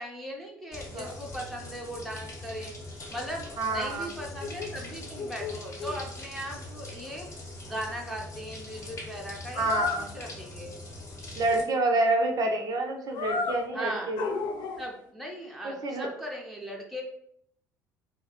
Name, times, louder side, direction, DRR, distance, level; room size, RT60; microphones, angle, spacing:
voice 1, 0.0-2.7 3.1-7.3 7.6-9.7 10.1-10.7 13.7-14.1 14.8-17.0, equal, ahead, -1 dB, 0.6 m, -38 dB
sound 1, 0.7-11.6, left 2 dB, 30° left, 0.8 m, -42 dB
sound 2, 3.1-3.2 3.4-3.5 3.9-4.7 5.2-6.0 9.5-10.1 13.1-13.6 14.2-15.0, left 4 dB, 55° left, 0.4 m, -32 dB
voice 2, 3.6-4.1 9.6-10.1 11.4-14.3 15.8-16.1, right 2 dB, 45° right, 2 dB, 0.5 m, -28 dB
2.2 x 2.0 x 2.9 m, 0.69 s
hypercardioid pair, 60°, 9 cm